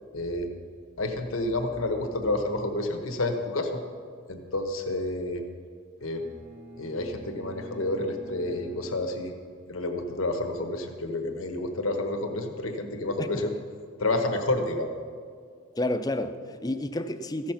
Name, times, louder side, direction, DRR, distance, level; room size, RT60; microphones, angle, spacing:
voice 1, 0.1-0.5 1.0-3.8 4.3-5.4 6.0-6.2 6.8-9.3 9.7-13.5 14.0-14.9, left 2 dB, 90° left, 5 dB, 1.1 m, -29 dB
Bowed string instrument, 6.0-9.8, right 3 dB, 75° right, 1.7 m, -48 dB
voice 2, 15.7-17.5, left 1 dB, 20° left, 9 dB, 0.4 m, -30 dB
14.5 x 6.3 x 5.8 m, 2.1 s
head